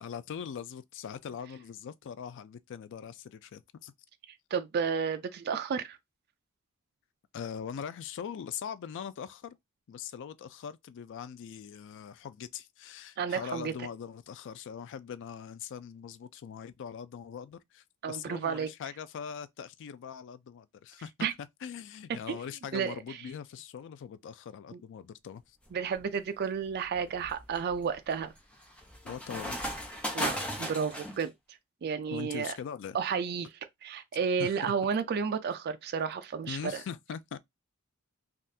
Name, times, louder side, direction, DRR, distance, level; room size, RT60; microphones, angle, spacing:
voice 1, 0.0-3.9 7.3-9.6 9.9-21.1 21.4-25.6 29.0-29.6 32.1-33.0 34.4-34.7 36.5-37.4, left 7 dB, 55° left, 0.3 m, -41 dB
voice 2, 4.5-6.0 13.2-13.7 18.0-18.7 21.2-21.3 22.3-22.4 22.7-23.0 25.7-28.3 30.1-31.3 31.8-32.6 32.9-33.5 33.8-36.6, right 6 dB, 50° right, 0.4 m, -31 dB
sound 1, 25.7-26.0 26.6-31.2, equal, 5° left, 0.8 m, -37 dB
3.4 x 2.4 x 2.7 m
head